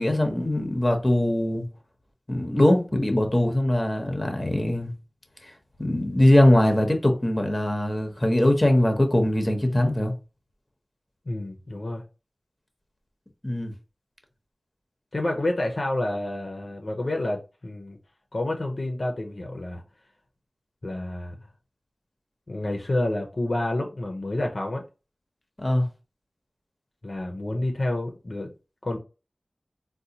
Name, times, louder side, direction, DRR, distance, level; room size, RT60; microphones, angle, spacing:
voice 1, 0.0-1.6 2.3-4.9 5.8-10.1 13.4-13.7 25.6-25.9, left 1 dB, 25° left, 0.8 m, -21 dB
voice 2, 11.3-12.0 15.1-18.0 18.3-19.8 20.8-21.3 22.5-24.8 27.0-28.5 28.8-29.0, left 1 dB, 55° left, 0.6 m, -29 dB
4.0 x 2.2 x 2.7 m
wide cardioid pair, 65°, 0 cm